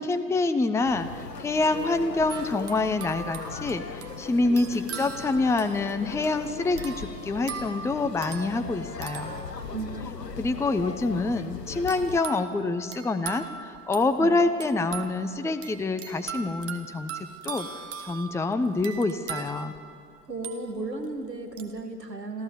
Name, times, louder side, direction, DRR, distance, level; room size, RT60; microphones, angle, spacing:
voice 1, 0.0-9.3 10.4-17.1 17.4-17.7 18.0-19.7, left 3 dB, 5° left, 10 dB, 0.8 m, -26 dB
sound 1, 0.8-12.2, left 5 dB, 85° left, 1.0 m, -39 dB
sound 2, 2.3-10.2 11.9-21.1 21.6-21.8, right 7 dB, 30° right, 1.7 m, -41 dB
voice 2, 9.7-10.1 14.2-14.3 20.3-22.4, right 3 dB, 85° right, 6 dB, 1.7 m, -34 dB
27.5 x 15.0 x 7.0 m, 2.4 s
figure-of-eight pair, 80°, 48 cm